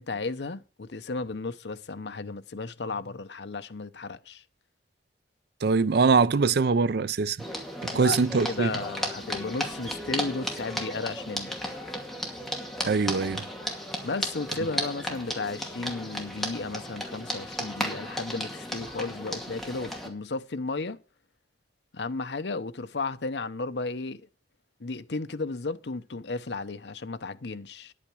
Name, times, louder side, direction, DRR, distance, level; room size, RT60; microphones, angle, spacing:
voice 1, 0.0-4.4 7.9-11.5 14.0-21.0 21.9-24.3 24.8-27.9, left 3 dB, 65° left, 0.8 m, -34 dB
voice 2, 5.6-7.4 7.8-8.7 12.8-13.4, right 4 dB, 60° right, 0.5 m, -23 dB
sound 1, 7.4-20.1, equal, ahead, 2.3 m, -34 dB
10.5 x 8.7 x 6.1 m
head